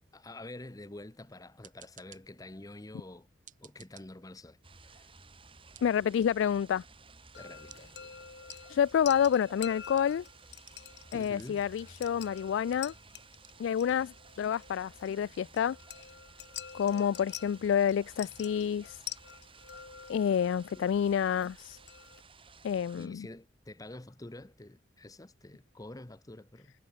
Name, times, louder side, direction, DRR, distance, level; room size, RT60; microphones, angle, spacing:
voice 1, 0.1-3.3 3.6-4.6 4.8-5.1 7.4-8.2 11.1-11.7 20.7-20.8 23.0-26.7, left 1 dB, 20° left, 0.9 m, -47 dB
sound 1, 1.3-18.2, right 11 dB, 45° right, 3.5 m, -63 dB
sound 2, 4.6-23.1, right 4 dB, 30° right, 3.7 m, -56 dB
voice 2, 5.8-6.8 8.7-10.2 11.1-12.9 13.6-15.8 16.7-19.0 20.1-21.8 22.6-23.3, left 8 dB, 85° left, 0.3 m, -28 dB
sound 3, 7.3-22.2, left 9 dB, 65° left, 1.8 m, -48 dB
head